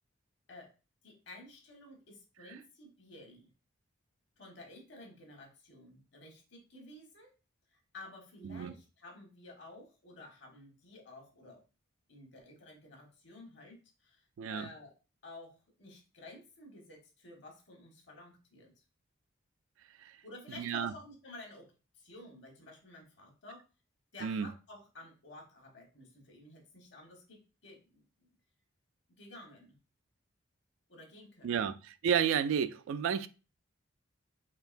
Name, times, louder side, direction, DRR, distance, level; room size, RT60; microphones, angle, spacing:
voice 1, 1.0-3.5 4.4-7.3 7.7-11.6 12.1-14.9 15.2-18.7 20.2-23.6 24.1-28.3 29.1-29.8 30.9-31.7, left 2 dB, 60° left, 1.2 m, -52 dB
voice 2, 14.4-14.7 20.0-20.2 20.6-20.9 24.2-24.5 31.4-33.3, right 7 dB, 80° right, 0.3 m, -31 dB
4.4 x 2.9 x 2.5 m
head